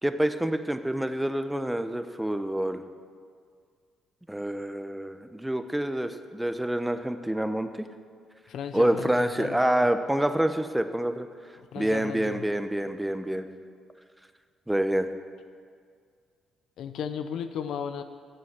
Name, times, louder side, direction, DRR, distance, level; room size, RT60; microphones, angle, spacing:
voice 1, 0.0-2.8 4.3-7.9 8.7-11.3 11.8-13.5 14.7-15.1, right 1 dB, 10° right, 9 dB, 0.9 m, -27 dB
voice 2, 8.5-9.8 11.6-12.5 16.8-18.0, left 7 dB, 70° left, 9 dB, 0.7 m, -35 dB
12.0 x 7.5 x 7.1 m, 2.1 s
hypercardioid pair, 50°, 0 cm